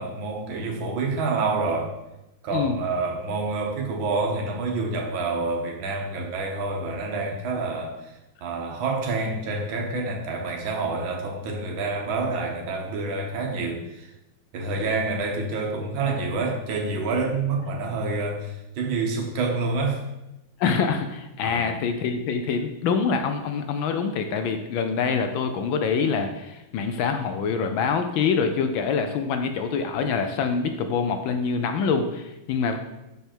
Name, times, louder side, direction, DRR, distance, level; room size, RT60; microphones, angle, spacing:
voice 1, 0.0-1.9 2.4-8.1 8.4-14.1 14.5-20.0 21.4-21.6 32.5-32.6, right 3 dB, 70° right, 0 dB, 1.7 m, -28 dB
voice 2, 20.6-32.8, left 5 dB, 75° left, 7 dB, 1.3 m, -25 dB
6.7 x 4.7 x 4.4 m, 0.94 s
omnidirectional pair, 2.4 m